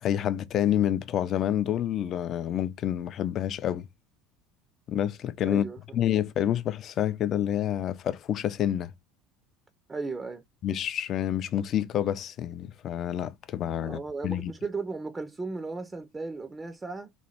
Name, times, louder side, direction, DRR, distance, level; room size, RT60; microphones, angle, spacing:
voice 1, 0.0-3.8 4.9-5.7 5.9-8.9 10.6-14.5, left 10 dB, 50° left, 0.3 m, -28 dB
voice 2, 5.5-6.0 9.9-10.4 13.8-17.1, right 3 dB, 20° right, 0.4 m, -36 dB
3.0 x 2.2 x 2.7 m
hypercardioid pair, 80°, 0 cm